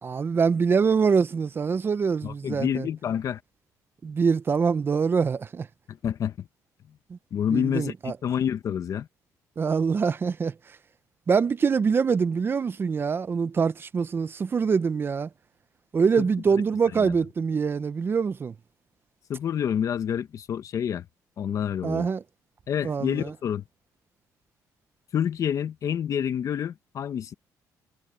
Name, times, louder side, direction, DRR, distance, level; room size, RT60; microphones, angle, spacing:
voice 1, 0.0-2.9 4.0-5.7 7.1-7.2 7.5-8.1 9.6-10.5 11.3-15.3 15.9-18.5 21.8-22.2 22.8-23.3, right 5 dB, 35° right, 0.8 m, -24 dB
voice 2, 2.2-3.4 5.9-6.5 7.3-9.1 16.2-16.3 16.9-17.1 19.3-21.0 21.4-22.1 22.7-23.6 25.1-27.3, left 8 dB, 55° left, 1.2 m, -28 dB
cardioid pair, 115°, 7 cm